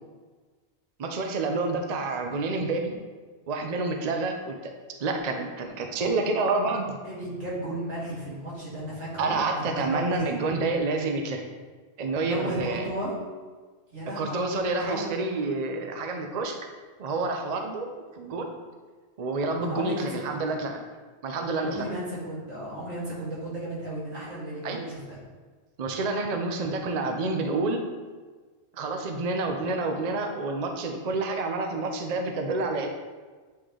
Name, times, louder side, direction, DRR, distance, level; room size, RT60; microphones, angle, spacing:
voice 1, 1.0-3.0 3.5-4.5 5.0-6.9 9.2-11.5 12.0-12.9 14.2-16.6 17.0-17.9 18.2-18.5 19.2-20.8 21.2-21.8 24.6-24.9 25.8-27.8 28.8-32.9, right 3 dB, 45° right, 4 dB, 0.6 m, -28 dB
voice 2, 7.0-10.3 12.2-13.1 13.9-15.1 19.6-20.1 20.3-20.6 21.6-25.2, right 1 dB, 85° right, -8 dB, 2.4 m, -34 dB
8.4 x 3.2 x 3.8 m, 1.4 s
omnidirectional pair, 1.1 m